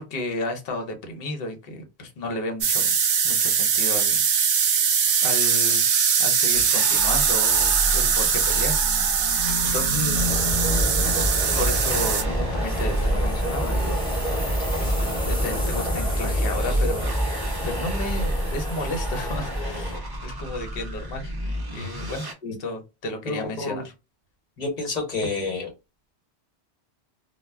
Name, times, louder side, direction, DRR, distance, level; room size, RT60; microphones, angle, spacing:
voice 1, 0.0-2.9 3.2-4.2 5.2-5.8 6.2-8.8 9.3-10.3 11.6-14.0 14.8-21.3 21.7-23.9, left 2 dB, 60° left, 0.9 m, -33 dB
sound 1, 2.6-12.2, right 6 dB, 65° right, 0.7 m, -21 dB
sound 2, 6.5-22.3, right 1 dB, 40° right, 0.3 m, -31 dB
sound 3, 10.1-20.0, equal, 5° left, 1.0 m, -27 dB
voice 2, 23.2-23.8 24.6-25.7, left 3 dB, 40° left, 1.1 m, -29 dB
2.1 x 2.1 x 3.3 m
omnidirectional pair, 1.1 m